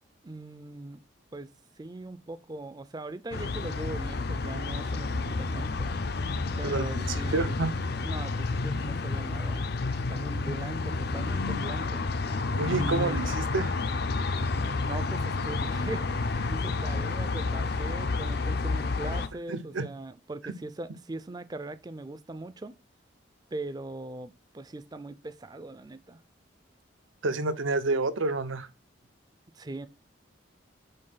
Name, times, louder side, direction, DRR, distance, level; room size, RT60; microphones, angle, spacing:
voice 1, 0.2-1.0 1.3-1.5 1.8-5.9 6.6-7.6 8.0-12.0 12.8-13.2 14.9-22.8 23.5-26.2 29.5-29.9, right 2 dB, 20° right, 0.4 m, -40 dB
sound 1, 3.3-19.3, left 3 dB, 55° left, 0.5 m, -30 dB
voice 2, 6.6-7.7 12.6-13.7 19.5-19.8 20.4-20.5 27.2-28.7, right 3 dB, 85° right, 0.7 m, -29 dB
5.4 x 4.2 x 5.6 m
head